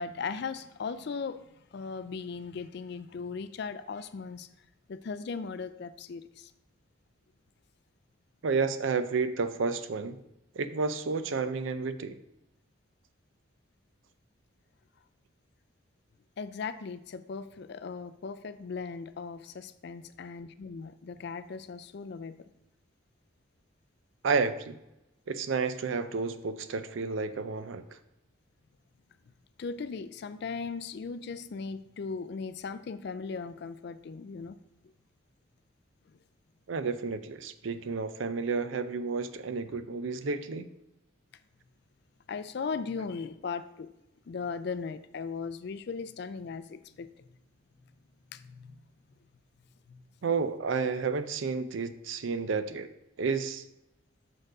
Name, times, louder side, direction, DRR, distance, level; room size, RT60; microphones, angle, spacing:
voice 1, 0.0-1.4 1.7-4.5 4.9-6.5 16.4-22.4 29.6-34.6 42.3-43.9 44.3-47.3 48.3-48.8 49.9-50.0, left 5 dB, 55° left, 12 dB, 0.4 m, -38 dB
voice 2, 8.4-10.2 10.6-12.2 24.2-24.8 25.3-28.0 36.7-40.7 50.2-52.9 53.2-53.6, right 4 dB, 70° right, 12 dB, 0.5 m, -31 dB
6.4 x 4.5 x 4.8 m, 0.90 s
head